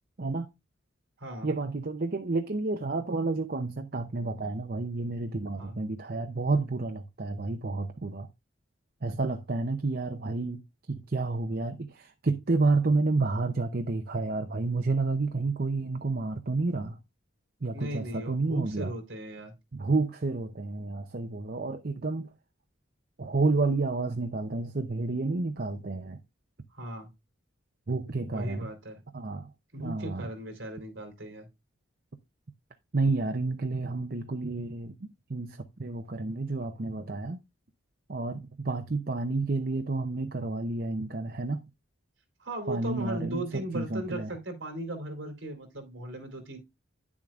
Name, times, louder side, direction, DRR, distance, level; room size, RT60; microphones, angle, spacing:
voice 1, 0.2-0.5 1.4-8.3 9.0-17.0 17.6-18.9 19.7-22.3 23.2-26.2 27.9-28.7 29.1-29.5 29.8-30.3 32.9-34.9 35.3-37.4 38.1-41.6 42.7-43.4 43.7-44.3, right 3 dB, 45° right, 0.7 m, -30 dB
voice 2, 17.7-19.5 26.7-27.1 28.3-29.0 29.7-31.5 42.4-46.6, right 1 dB, 65° right, 3.3 m, -37 dB
10.0 x 7.3 x 2.4 m
head